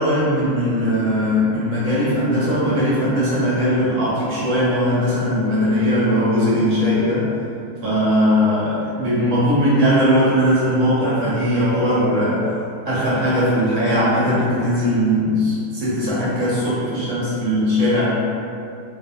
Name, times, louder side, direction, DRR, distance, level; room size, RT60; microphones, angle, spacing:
voice 1, 0.0-7.3 7.8-12.4 12.9-18.1, equal, 60° right, -9 dB, 0.9 m, -19 dB
2.5 x 2.3 x 2.6 m, 2.5 s
omnidirectional pair, 1.7 m